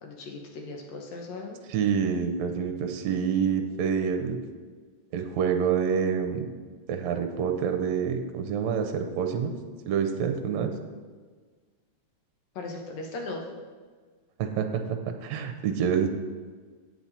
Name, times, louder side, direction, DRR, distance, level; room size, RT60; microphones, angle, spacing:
voice 1, 0.0-1.6 12.6-13.5, left 2 dB, 65° left, 1 dB, 2.2 m, -38 dB
voice 2, 1.7-4.4 5.1-6.5 6.9-9.5 9.9-10.7 14.4-16.1, right 7 dB, 75° right, 5 dB, 1.8 m, -27 dB
8.9 x 7.8 x 4.2 m, 1.5 s
omnidirectional pair, 3.7 m